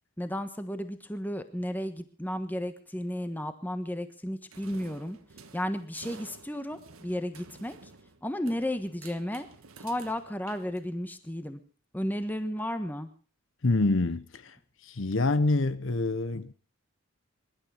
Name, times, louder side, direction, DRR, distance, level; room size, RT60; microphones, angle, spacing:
voice 1, 0.2-5.2 5.5-7.8 8.2-9.5 9.8-11.6 11.9-13.1, equal, 10° left, 1.3 m, -33 dB
sound 1, 4.5-11.2, right 4 dB, 80° right, 1.5 m, -52 dB
voice 2, 13.6-14.6 14.8-16.5, left 2 dB, 65° left, 0.8 m, -26 dB
23.0 x 12.0 x 5.0 m
head